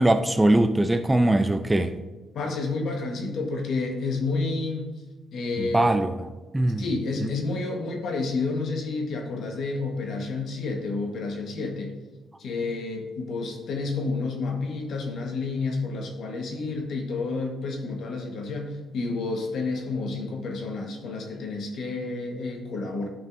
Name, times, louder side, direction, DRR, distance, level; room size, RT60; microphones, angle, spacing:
voice 1, 0.0-2.0 5.6-6.2 6.5-6.9 7.2-7.3, right 1 dB, 15° right, 9 dB, 0.5 m, -21 dB
voice 2, 2.3-4.9 5.3-5.9 6.6-11.9 12.4-23.1, left 3 dB, 70° left, 3 dB, 1.3 m, -30 dB
11.0 x 5.4 x 2.6 m, 1.2 s
cardioid pair, 90°, 0 cm